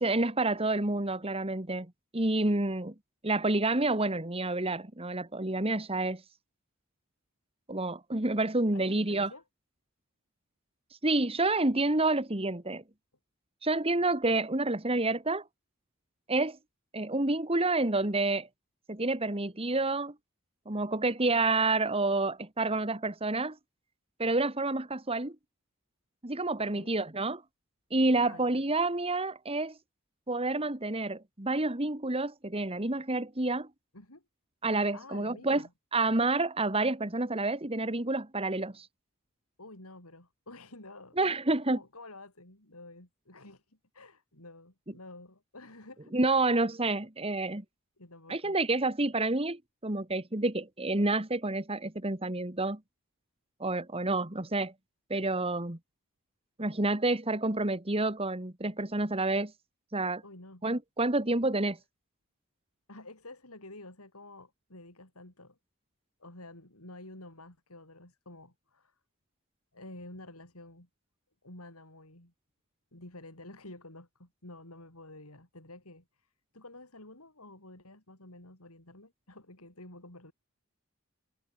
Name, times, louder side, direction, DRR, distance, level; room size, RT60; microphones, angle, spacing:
voice 1, 0.0-1.9 2.1-2.9 3.2-6.2 7.7-9.3 11.0-12.8 13.6-15.4 16.3-16.6 16.9-18.5 18.9-20.1 20.7-23.6 24.2-25.4 26.2-27.4 27.9-29.7 30.3-33.7 34.6-35.6 35.9-38.9 41.2-41.8 46.1-47.6 48.3-52.8 53.6-54.7 55.1-55.8 56.6-59.5 59.9-60.2 60.6-61.8, right 2 dB, 25° right, 1.8 m, -29 dB
voice 2, 8.7-9.4 26.6-26.9 28.2-28.6 33.9-34.2 34.9-35.7 39.6-41.4 41.6-46.1 46.5-46.6 48.0-48.6 60.2-60.6 62.9-65.6 66.2-69.0 69.7-70.9 71.4-72.3 72.9-80.3, left 2 dB, 80° left, 6.8 m, -50 dB
head